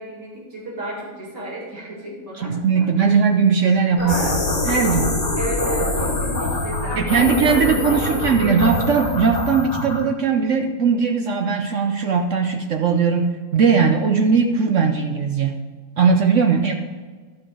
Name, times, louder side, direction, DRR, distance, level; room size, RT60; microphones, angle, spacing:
voice 1, 0.0-3.1 4.0-4.4 5.4-8.6 16.5-16.7, right 2 dB, 60° right, -5 dB, 3.1 m, -32 dB
voice 2, 2.4-4.4 4.7-5.1 6.9-15.6 16.0-16.7, right 5 dB, 75° right, 4 dB, 0.6 m, -19 dB
sound 1, 4.0-10.0, left 2 dB, 40° left, 2.0 m, -24 dB
12.0 x 5.9 x 4.9 m, 1.5 s
omnidirectional pair, 2.1 m